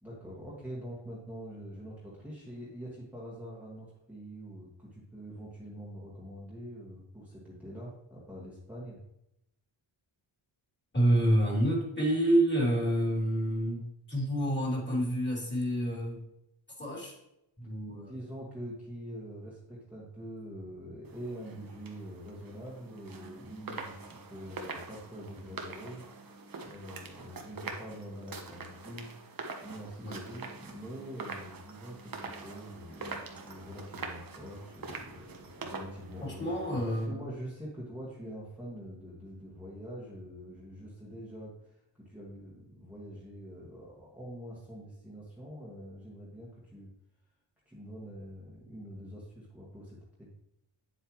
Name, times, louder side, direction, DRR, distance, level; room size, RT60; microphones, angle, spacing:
voice 1, 0.0-9.0 17.9-46.9 47.7-50.3, equal, 5° right, -7 dB, 1.9 m, -45 dB
voice 2, 10.9-16.2 16.8-17.1 17.6-18.1 30.0-30.2 36.2-37.2, right 1 dB, 20° left, -3 dB, 3.3 m, -28 dB
sound 1, 21.0-37.1, right 4 dB, 45° right, 1.2 m, -44 dB
8.1 x 7.8 x 3.1 m, 0.84 s
cardioid pair, 100°, 47 cm